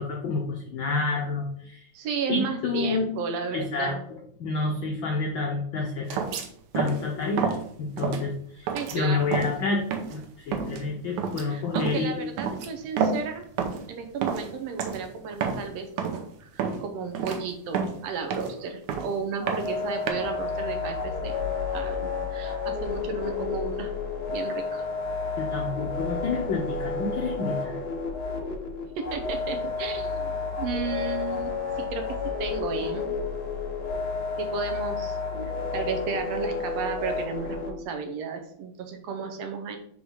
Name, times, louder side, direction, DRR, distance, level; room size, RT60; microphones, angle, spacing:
voice 1, 0.0-1.9 2.3-3.1 3.5-3.9 4.4-6.2 6.7-9.8 10.1-12.2 25.4-27.7, left 3 dB, 80° left, 1 dB, 1.1 m, -29 dB
voice 2, 1.9-4.0 8.7-9.3 11.4-13.5 13.9-21.3 21.7-23.9 24.3-24.8 29.0-33.2 34.4-35.2 35.7-39.8, right 5 dB, 70° right, 5 dB, 1.9 m, -33 dB
sound 1, 6.1-6.5 6.7-7.1 7.4-7.6 8.0-8.2 8.7-9.0 9.3-9.6 9.9-10.2 10.5-10.8 11.2-11.4 11.8-12.0 12.4-13.3 13.6-13.9 14.2-14.5 14.8-15.0 15.3-15.7 16.0-16.2 16.6-16.8 17.1-17.4 17.7-18.6 18.9-19.1 19.5-20.1, right 6 dB, 90° right, 2.2 m, -29 dB
sound 2, 19.4-37.7, left 4 dB, 55° left, 1.1 m, -31 dB
4.8 x 4.7 x 5.6 m, 0.64 s
omnidirectional pair, 3.3 m